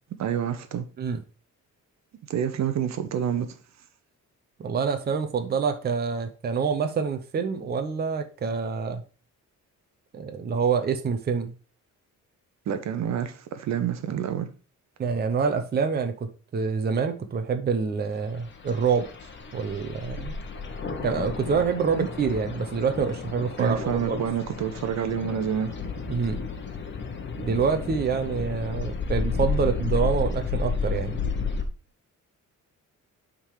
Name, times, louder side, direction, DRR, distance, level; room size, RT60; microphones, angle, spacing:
voice 1, 0.1-0.9 2.3-3.6 12.7-14.5 22.0-22.1 23.6-25.8, right 9 dB, 60° right, 0.8 m, -28 dB
voice 2, 4.6-9.0 10.1-11.5 15.0-19.1 19.5-20.4 20.9-24.3 26.1-26.4 27.4-31.2, right 5 dB, 30° right, 0.7 m, -26 dB
sound 1, 18.3-31.6, left 4 dB, 35° left, 1.1 m, -32 dB
8.6 x 3.8 x 4.8 m
cardioid pair, 165°, 31 cm